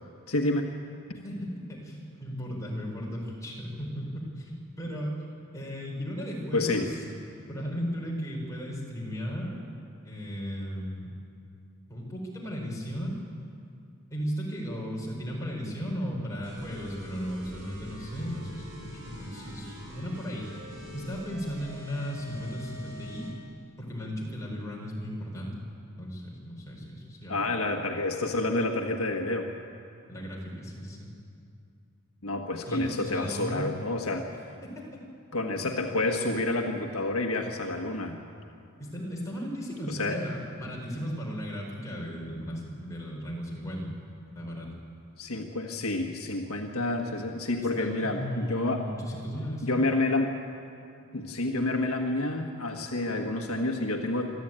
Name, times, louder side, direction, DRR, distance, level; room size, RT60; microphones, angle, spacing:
voice 1, 0.3-0.7 6.5-6.9 27.3-29.5 32.2-34.3 35.3-38.2 39.9-40.2 45.2-48.9 49.6-50.4 51.1-54.3, left 2 dB, 75° left, 2 dB, 1.5 m, -29 dB
voice 2, 1.2-5.2 5.5-7.0 7.5-9.6 10.0-11.1 11.9-13.2 14.1-23.3 23.8-25.6 26.0-27.5 30.1-31.1 32.7-33.7 38.8-43.9 44.3-44.7 47.6-49.7, equal, 15° left, -3 dB, 4.7 m, -36 dB
sound 1, 16.4-23.3, equal, 55° right, 6.3 m, -45 dB
25.0 x 13.0 x 9.0 m, 2.5 s
head